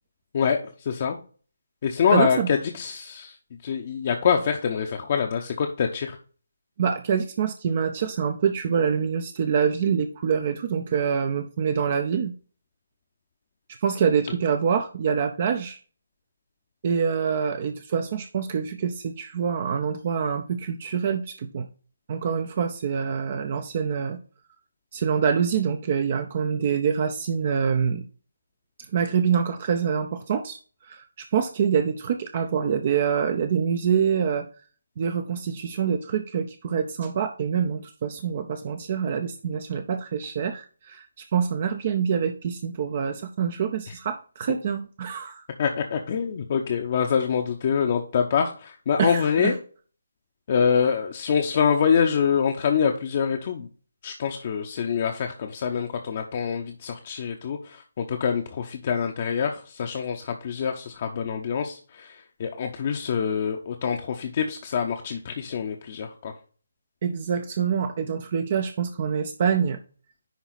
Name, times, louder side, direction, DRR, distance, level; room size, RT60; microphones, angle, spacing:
voice 1, 0.3-1.2 1.8-3.4 3.6-6.2 45.6-49.6 50.5-53.7 54.0-66.3, left 7 dB, 35° left, 3 dB, 0.8 m, -25 dB
voice 2, 2.1-2.5 6.8-12.3 13.8-15.8 16.8-21.7 22.1-24.2 24.9-28.0 28.9-34.5 35.0-45.4 49.0-49.5 67.0-69.8, right 7 dB, 35° right, 8 dB, 0.6 m, -25 dB
10.5 x 3.9 x 4.0 m, 0.39 s
figure-of-eight pair, 145°, 0 cm